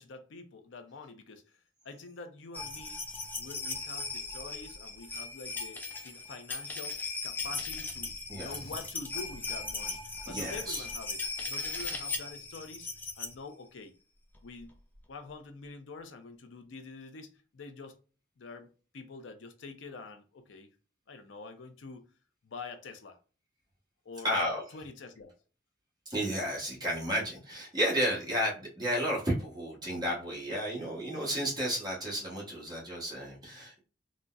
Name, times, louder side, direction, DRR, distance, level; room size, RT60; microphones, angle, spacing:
voice 1, 0.0-1.6 1.8-3.0 3.4-10.0 10.2-11.2 11.4-12.9 13.2-13.9 14.4-14.7 15.1-18.0 18.4-18.7 18.9-20.7 21.1-22.0 22.4-23.2 24.0-24.3 24.7-25.3, left 3 dB, 75° left, 0.5 m, -46 dB
sound 1, 2.5-13.3 14.4-14.5 14.7-14.8, left 3 dB, 10° left, 0.4 m, -38 dB
voice 2, 8.3-8.7 10.3-10.8 11.7-12.0 24.2-24.6 26.1-33.8, equal, 20° right, 1.0 m, -32 dB
3.8 x 2.1 x 2.3 m
head